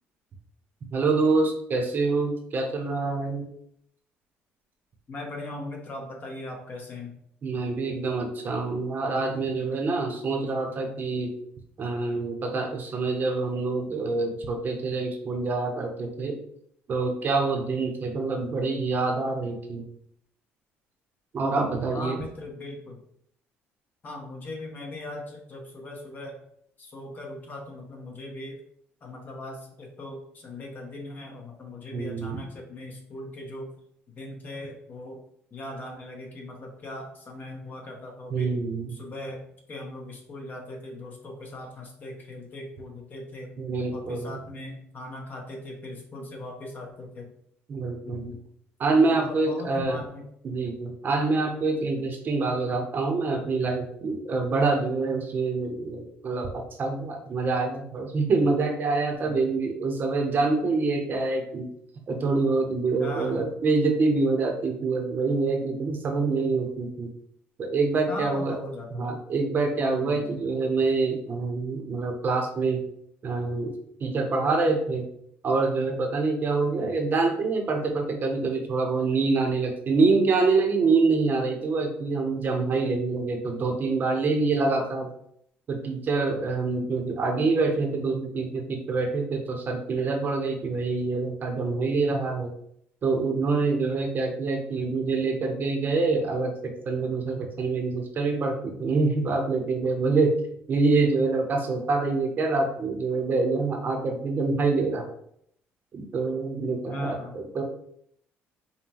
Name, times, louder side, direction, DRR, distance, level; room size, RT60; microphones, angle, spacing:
voice 1, 0.9-3.5 7.4-11.3 11.8-16.3 16.9-19.9 21.3-22.2 31.9-32.4 38.3-38.9 43.6-44.3 47.7-48.3 48.8-50.0 50.4-61.7 62.1-67.1 67.6-68.6 68.9-72.8 73.2-73.7 74.0-75.1 75.4-85.1 85.7-92.5 93.0-100.4 100.7-105.1 105.9-107.6, right 3 dB, 45° right, 3 dB, 0.8 m, -26 dB
voice 2, 5.1-7.2 21.8-23.0 24.0-26.4 26.8-28.6 29.0-33.7 34.1-35.2 35.5-38.5 38.9-39.4 39.7-43.5 43.9-47.3 48.0-48.4 49.1-50.3 52.0-52.1 59.2-59.4 63.0-63.5 68.1-69.1 69.9-70.3 76.7-76.9 86.7-86.8 106.9-107.4, left 2 dB, 40° left, 1 dB, 1.1 m, -39 dB
5.4 x 2.2 x 2.9 m, 0.69 s
cardioid pair, 105°, 5 cm